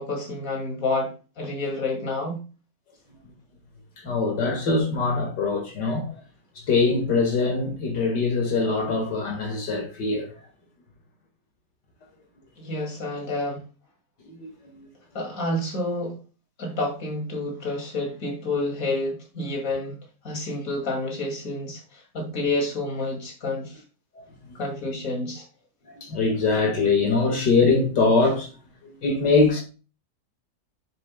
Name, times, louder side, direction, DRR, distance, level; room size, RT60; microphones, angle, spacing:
voice 1, 0.0-2.4 12.6-13.6 15.1-16.2 16.6-20.0 20.2-23.8 24.5-25.5, left 2 dB, 50° left, 2.9 m, -29 dB
voice 2, 4.0-6.2 6.6-10.3 14.2-14.9 24.1-24.6 25.9-28.5 28.8-29.6, left 3 dB, 85° left, 2.6 m, -23 dB
9.1 x 7.0 x 2.3 m
omnidirectional pair, 1.8 m